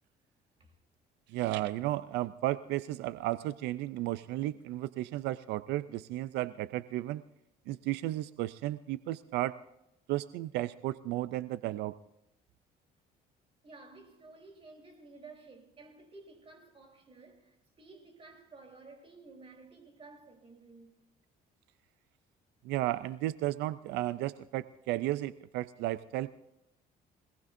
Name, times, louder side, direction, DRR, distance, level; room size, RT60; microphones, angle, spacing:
voice 1, 1.3-7.2 7.7-9.6 10.1-12.0 22.6-26.3, right 15 dB, 85° right, 0.5 m, -34 dB
voice 2, 13.6-21.0, right 3 dB, 35° right, 3.7 m, -53 dB
25.0 x 18.5 x 2.6 m
cardioid pair, 110°, 17 cm